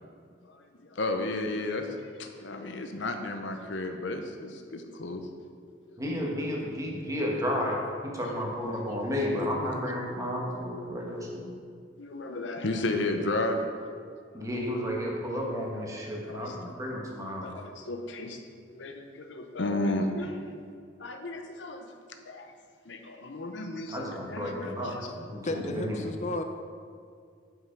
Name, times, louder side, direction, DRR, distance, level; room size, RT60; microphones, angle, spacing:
voice 1, 0.4-5.2 5.9-6.0 8.9-9.1 9.4-9.5 9.8-9.9 12.0-13.6 14.4-14.5 16.2-16.6 17.4-18.4 18.7-20.4 21.0-21.9 22.2-22.5 22.9-25.1 25.5-25.7, left 2 dB, 70° left, 5 dB, 0.7 m, -33 dB
voice 2, 6.0-7.8 8.0-11.5 14.3-17.5 23.9-26.0, equal, 20° right, -2 dB, 1.4 m, -32 dB
voice 3, 25.4-26.4, left 2 dB, 40° left, 6 dB, 0.5 m, -33 dB
7.9 x 5.6 x 5.7 m, 2.1 s
head